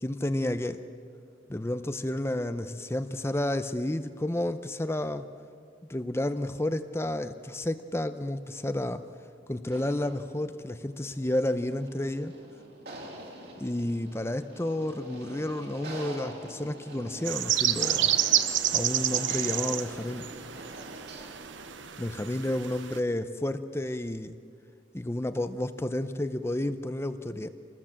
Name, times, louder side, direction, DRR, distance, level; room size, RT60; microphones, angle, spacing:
voice 1, 0.0-0.8 1.5-5.3 5.9-9.0 9.5-12.3 13.6-18.2 18.7-20.3 22.0-24.4 24.9-27.5, left 1 dB, 15° left, 10 dB, 0.6 m, -31 dB
sound 1, 9.6-22.0, right 1 dB, 55° right, 3.7 m, -45 dB
sound 2, 17.3-23.0, right 11 dB, 80° right, 0.9 m, -29 dB
26.5 x 20.0 x 7.5 m, 2.3 s
head